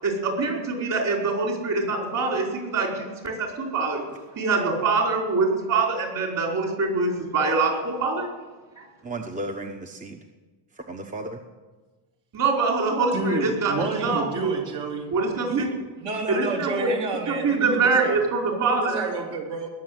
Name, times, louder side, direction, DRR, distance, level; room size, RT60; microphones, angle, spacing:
voice 1, 0.0-4.0 4.3-8.3 8.8-8.9 12.3-14.5 15.1-15.7 16.3-16.9 17.3-19.1, right 4 dB, 45° right, 0 dB, 5.0 m, -24 dB
voice 2, 4.6-4.9 9.0-10.2 10.7-11.4, right 2 dB, 15° right, 4 dB, 1.0 m, -34 dB
voice 3, 13.1-15.1 15.4-15.6 16.0-18.2 18.5-19.7, right 3 dB, 60° right, 0 dB, 3.7 m, -30 dB
20.0 x 7.1 x 9.6 m, 1.3 s
cardioid pair, 135°, 46 cm